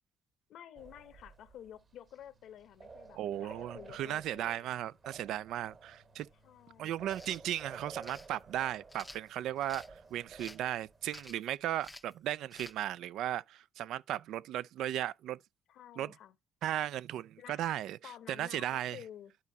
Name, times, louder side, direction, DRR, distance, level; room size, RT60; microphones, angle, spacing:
voice 1, 0.5-4.7 6.4-7.1 15.7-16.4 17.4-17.6 18.0-19.3, left 10 dB, 70° left, 0.8 m, -51 dB
sound 1, 0.7-11.4, right 4 dB, 35° right, 1.2 m, -54 dB
voice 2, 3.2-6.3 6.8-15.4 16.0-16.1 16.6-19.0, right 12 dB, 75° right, 0.3 m, -36 dB
sound 2, 7.0-7.4 8.0-8.3 8.9-9.9 10.4-10.7 11.1-11.5 11.8-12.1 12.5-12.8, left 1 dB, 10° left, 0.5 m, -50 dB
12.0 x 4.1 x 2.7 m
cardioid pair, 100°, 0 cm